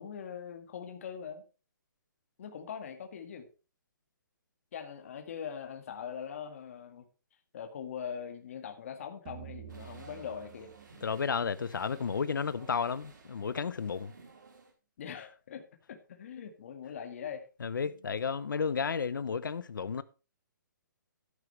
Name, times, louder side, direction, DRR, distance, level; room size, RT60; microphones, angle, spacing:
voice 1, 0.0-1.4 2.4-3.5 4.7-7.1 7.5-10.7 15.0-17.4 17.9-18.0, left 7 dB, 45° left, 1.9 m, -42 dB
sound 1, 9.3-12.5, right 15 dB, 30° right, 0.6 m, -50 dB
sound 2, 9.7-14.7, right 4 dB, 70° right, 4.3 m, -56 dB
voice 2, 11.0-14.1 17.6-20.0, left 6 dB, 85° left, 0.9 m, -32 dB
13.5 x 9.8 x 3.3 m
hypercardioid pair, 170°, 10 cm